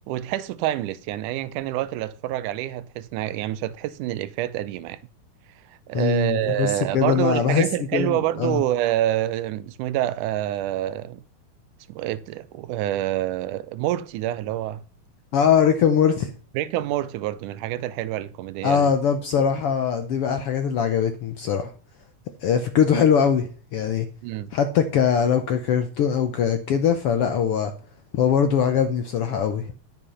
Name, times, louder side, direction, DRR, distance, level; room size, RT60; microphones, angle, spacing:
voice 1, 0.1-5.0 5.9-11.2 11.9-14.8 16.5-18.9 24.2-24.5, right 13 dB, 85° right, 2.2 m, -27 dB
voice 2, 5.9-7.7 7.9-8.6 15.3-16.3 18.6-21.7 22.4-24.1 24.5-27.7 28.1-29.6, left 7 dB, 70° left, 1.4 m, -21 dB
11.0 x 6.7 x 5.5 m
omnidirectional pair, 3.5 m